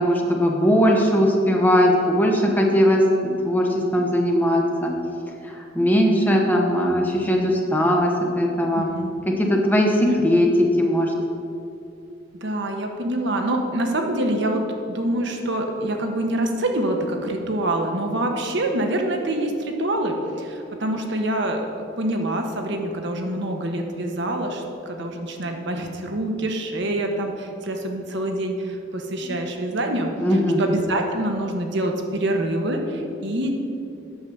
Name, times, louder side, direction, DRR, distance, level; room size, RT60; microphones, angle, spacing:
voice 1, 0.0-4.9 5.7-8.9 9.4-11.1 29.2-29.3 30.2-30.6, equal, 10° left, 0 dB, 1.1 m, -19 dB
voice 2, 8.7-9.1 12.4-33.5, right 1 dB, 65° right, 3 dB, 1.1 m, -26 dB
8.6 x 6.6 x 7.1 m, 2.6 s
head